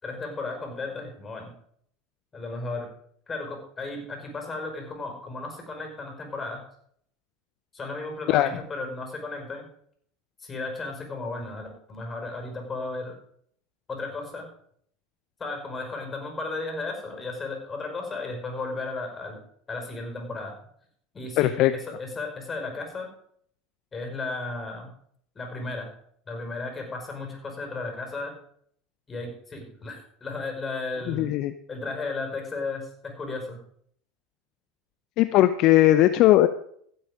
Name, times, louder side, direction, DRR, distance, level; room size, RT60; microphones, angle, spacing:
voice 1, 0.0-1.5 2.3-2.9 3.3-6.6 7.7-9.6 10.4-13.1 13.9-14.5 15.4-19.4 19.7-20.5 21.1-23.1 23.9-24.9 25.4-25.9 26.3-28.4 29.1-31.3 31.7-33.6, left 3 dB, 25° left, 3 dB, 5.3 m, -34 dB
voice 2, 21.4-21.7 31.1-31.5 35.2-36.5, left 14 dB, 55° left, 11 dB, 0.6 m, -19 dB
16.0 x 8.1 x 5.1 m, 0.65 s
hypercardioid pair, 85°, 0 cm